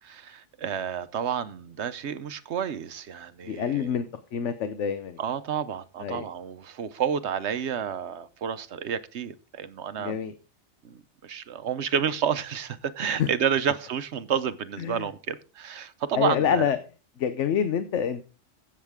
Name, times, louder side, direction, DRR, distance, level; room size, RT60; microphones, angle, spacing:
voice 1, 0.0-4.0 5.2-10.2 10.8-16.7, right 8 dB, 65° right, 1.0 m, -30 dB
voice 2, 3.5-4.1 4.3-5.2 6.0-6.3 10.0-10.3 13.0-13.3 14.8-15.1 16.1-16.8 17.2-18.3, left 8 dB, 75° left, 1.1 m, -27 dB
15.5 x 7.4 x 3.5 m
omnidirectional pair, 1.3 m